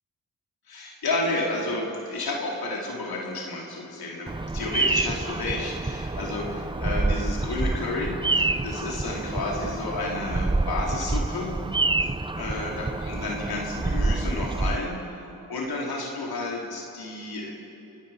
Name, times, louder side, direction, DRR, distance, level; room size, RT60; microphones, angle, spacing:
voice 1, 0.7-11.5 12.4-17.5, left 2 dB, 75° left, -2 dB, 3.8 m, -31 dB
Bird vocalization bird call bird song, 4.3-14.8, right 2 dB, 15° right, 0.8 m, -27 dB
29.0 x 16.5 x 5.9 m, 2.7 s
cardioid pair, 50°, 37 cm